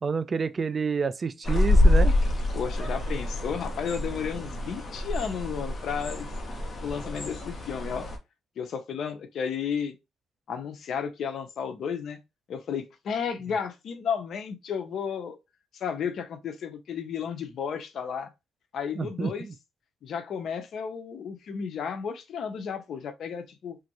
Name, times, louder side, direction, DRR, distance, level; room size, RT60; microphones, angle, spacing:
voice 1, 0.0-2.1 19.0-19.3, right 5 dB, 40° right, 0.3 m, -28 dB
sound 1, 1.4-8.2, left 1 dB, 35° left, 1.0 m, -26 dB
voice 2, 2.5-6.3 6.8-8.1 8.6-10.0 10.5-12.2 12.5-15.4 15.7-18.3 18.7-19.5 20.0-23.8, left 7 dB, 65° left, 0.6 m, -33 dB
3.1 x 2.4 x 2.9 m
cardioid pair, 90°, 0 cm